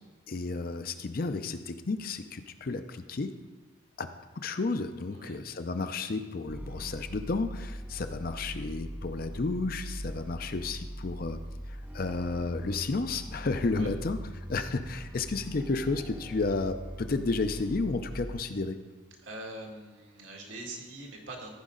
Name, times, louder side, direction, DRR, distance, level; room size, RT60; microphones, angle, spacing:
voice 1, 0.3-3.3 4.0-11.4 11.7-18.8, left 3 dB, 50° left, 9 dB, 0.5 m, -32 dB
voice 2, 5.1-5.4 13.7-13.9 19.2-21.5, right 2 dB, 80° right, -1 dB, 1.8 m, -43 dB
sound 1, 6.5-18.3, equal, 10° right, 0.4 m, -41 dB
14.5 x 5.1 x 3.8 m, 1.2 s
head